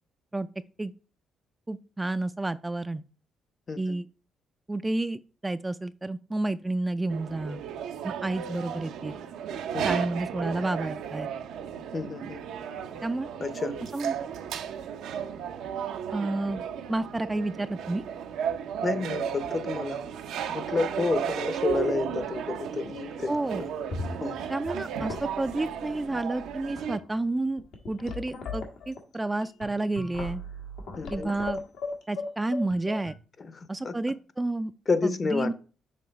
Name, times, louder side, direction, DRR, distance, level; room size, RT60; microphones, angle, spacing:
voice 1, 1.7-3.0 3.8-4.1 4.7-7.6 8.0-9.2 9.8-11.3 13.0-13.3 13.9-14.1 16.1-16.6 16.9-18.0 23.3-23.6 24.5-30.4 31.1-31.6 32.1-33.1 33.7-34.7 35.0-35.5, right 2 dB, 15° right, 0.3 m, -30 dB
sound 1, 7.1-27.0, right 8 dB, 85° right, 0.6 m, -34 dB
voice 2, 11.9-12.4 13.4-13.8 18.8-20.0 20.5-23.7 24.2-24.4 31.0-31.3 33.4-33.9 34.9-35.5, left 4 dB, 40° left, 0.7 m, -30 dB
sound 2, 22.6-23.0 23.3-23.4 23.9-24.7 25.0-25.6 26.3-26.4 26.7-27.0 27.6-33.1, left 3 dB, 80° left, 1.5 m, -37 dB
6.7 x 2.9 x 5.2 m
cardioid pair, 90°, 0 cm